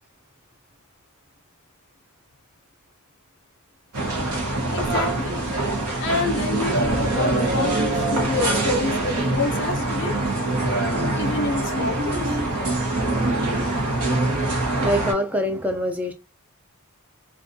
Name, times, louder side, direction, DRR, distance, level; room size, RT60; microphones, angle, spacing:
sound 1, 3.9-15.1, right 2 dB, 75° right, 0.8 m, -24 dB
voice 1, 4.7-5.4 6.0-10.1 11.1-12.4, left 3 dB, 55° left, 0.5 m, -28 dB
voice 2, 14.8-16.1, equal, 5° right, 0.3 m, -24 dB
2.6 x 2.3 x 2.6 m
head